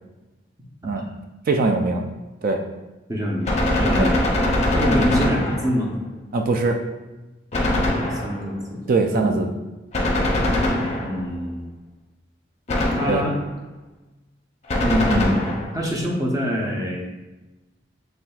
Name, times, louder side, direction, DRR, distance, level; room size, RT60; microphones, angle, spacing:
voice 1, 1.5-2.0 2.4-2.6 4.0-4.1 6.3-6.8 8.9-9.5 13.1-13.2, right 3 dB, 50° right, 4 dB, 0.4 m, -21 dB
voice 2, 3.1-4.2 4.7-5.9 8.1-8.8 9.1-9.4 11.0-11.6 12.9-13.4 14.8-15.4 15.7-17.1, equal, 20° right, -2 dB, 0.8 m, -25 dB
Gunshot gunfire, 3.4-6.0 7.5-8.6 9.9-11.4 12.7-13.5 14.7-15.8, left 1 dB, 35° left, 0.6 m, -22 dB
5.9 x 3.2 x 2.3 m, 1.1 s
head